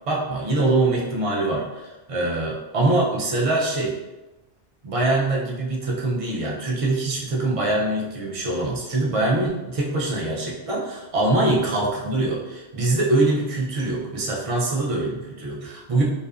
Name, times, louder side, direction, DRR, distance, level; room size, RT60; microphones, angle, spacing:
voice 1, 0.1-4.0 4.8-16.0, right 2 dB, 60° right, -3 dB, 0.3 m, -23 dB
2.6 x 2.4 x 2.3 m, 1.1 s
omnidirectional pair, 1.1 m